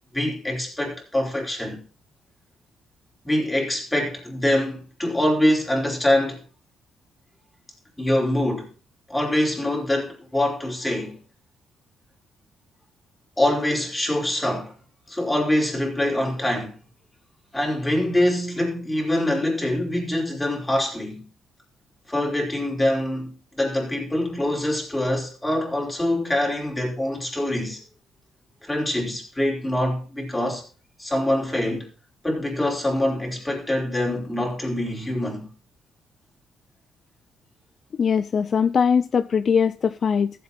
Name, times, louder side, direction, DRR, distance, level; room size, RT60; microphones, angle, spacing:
voice 1, 0.1-1.8 3.2-6.4 8.0-8.7 9.1-11.2 13.4-14.7 15.1-16.8 17.5-21.2 22.1-27.8 28.6-30.6 31.0-31.9 32.2-35.5, left 1 dB, 10° left, 5.0 m, -24 dB
voice 2, 37.9-40.4, left 6 dB, 50° left, 0.5 m, -21 dB
15.0 x 8.2 x 4.3 m
cardioid pair, 90°, 0 cm